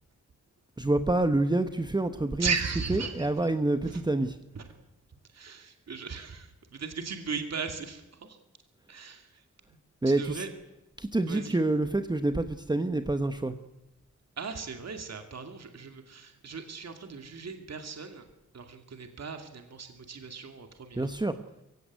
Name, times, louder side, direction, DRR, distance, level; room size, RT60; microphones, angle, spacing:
voice 1, 0.8-2.5 3.2-4.3 10.0-10.4 11.0-13.5 21.0-21.3, right 2 dB, 15° right, 8 dB, 1.0 m, -27 dB
voice 2, 2.4-3.5 3.8-4.0 4.5-4.7 5.3-8.4 8.9-9.8 10.0-10.5 11.3-11.6 14.4-18.3 18.5-21.1, right 5 dB, 60° right, 6 dB, 2.5 m, -37 dB
23.0 x 16.5 x 9.5 m, 0.97 s
wide cardioid pair, 135°, 29 cm